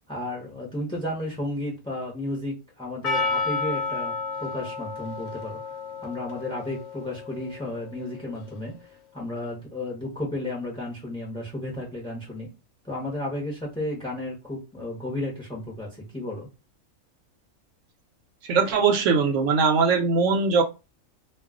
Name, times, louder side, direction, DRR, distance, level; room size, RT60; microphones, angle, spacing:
voice 1, 0.1-4.2 4.4-5.6 6.0-12.5 12.8-16.5, left 1 dB, 5° left, 0.5 m, -33 dB
Percussion, 3.0-8.0, left 4 dB, 65° left, 0.7 m, -31 dB
voice 2, 18.5-20.6, right 5 dB, 70° right, 0.8 m, -21 dB
2.3 x 2.3 x 3.6 m
omnidirectional pair, 1.5 m